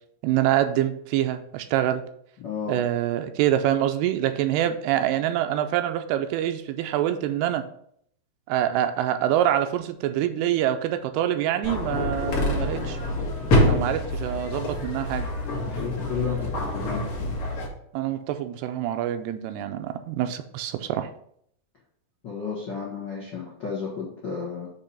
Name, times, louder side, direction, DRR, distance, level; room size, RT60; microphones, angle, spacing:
voice 1, 0.2-2.0 2.7-7.6 8.5-13.0 13.7-15.3 17.9-21.1, right 11 dB, 85° right, 8 dB, 2.5 m, -25 dB
voice 2, 2.4-2.8 14.6-14.8 15.6-17.3 22.2-24.7, left 6 dB, 85° left, -6 dB, 1.0 m, -33 dB
sound 1, 11.6-17.7, left 1 dB, 65° left, 1.4 m, -26 dB
6.9 x 2.9 x 5.7 m, 0.67 s
omnidirectional pair, 4.6 m